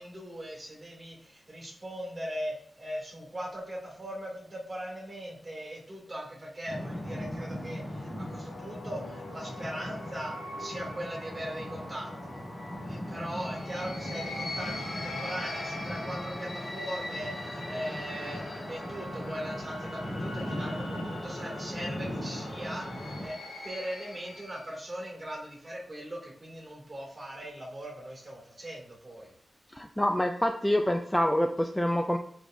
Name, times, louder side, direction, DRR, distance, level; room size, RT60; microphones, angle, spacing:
voice 1, 0.0-12.4 12.8-23.4 23.6-29.3, equal, 25° right, -3 dB, 2.4 m, -40 dB
sound 1, 6.7-23.3, equal, 35° left, 2.9 m, -39 dB
sound 2, 7.9-24.7, left 1 dB, 55° left, 1.7 m, -42 dB
voice 2, 29.7-32.2, left 1 dB, 10° left, 5 dB, 0.4 m, -26 dB
9.0 x 5.0 x 2.6 m, 0.63 s
wide cardioid pair, 140°, 0 cm